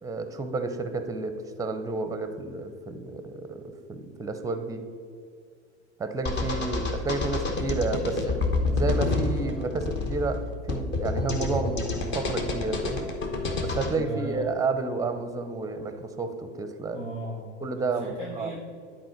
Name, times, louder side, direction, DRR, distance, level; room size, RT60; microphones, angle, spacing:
voice 1, 0.0-4.9 6.0-10.4 10.7-13.1 13.6-17.0 17.6-18.5, right 3 dB, 10° right, 8 dB, 0.6 m, -31 dB
sound 1, 6.3-13.9, left 3 dB, 30° left, 1.1 m, -28 dB
voice 2, 6.4-6.7 13.9-14.4 14.9-15.2 16.9-18.6, equal, 90° left, -6 dB, 1.8 m, -37 dB
10.0 x 4.4 x 4.5 m, 2.2 s
hypercardioid pair, 90°, 36 cm